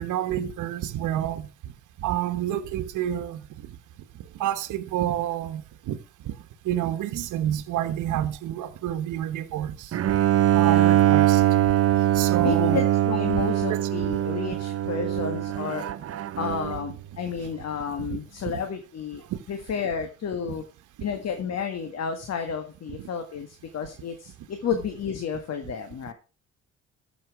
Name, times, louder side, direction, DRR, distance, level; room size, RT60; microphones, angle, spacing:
voice 1, 0.0-1.5 2.0-3.4 4.4-6.0 6.2-6.3 6.6-9.9 10.5-11.4 12.1-12.8 13.3-13.4 13.7-13.8 18.0-18.2, right 12 dB, 85° right, 1.2 m, -28 dB
Bowed string instrument, 9.9-16.9, right 13 dB, 50° right, 0.7 m, -22 dB
voice 2, 10.6-11.2 12.4-15.9 16.4-20.6 21.0-26.1, left 6 dB, 60° left, 1.7 m, -31 dB
14.0 x 6.2 x 4.7 m
cardioid pair, 90°, 30 cm